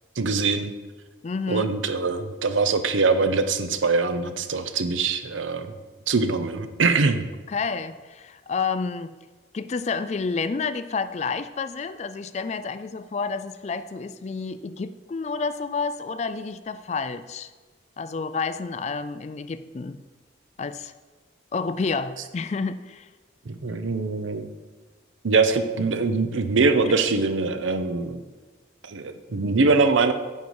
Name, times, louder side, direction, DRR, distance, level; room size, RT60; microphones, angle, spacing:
voice 1, 0.2-0.7 1.5-5.7 6.1-7.2 23.5-24.5 25.2-28.2 28.8-30.1, right 4 dB, 90° right, 10 dB, 0.7 m, -23 dB
voice 2, 1.2-1.7 7.5-9.1 9.5-17.5 18.0-20.0 20.6-20.9 21.5-23.1, left 4 dB, 35° left, 12 dB, 0.3 m, -29 dB
9.3 x 5.4 x 4.7 m, 1.3 s
head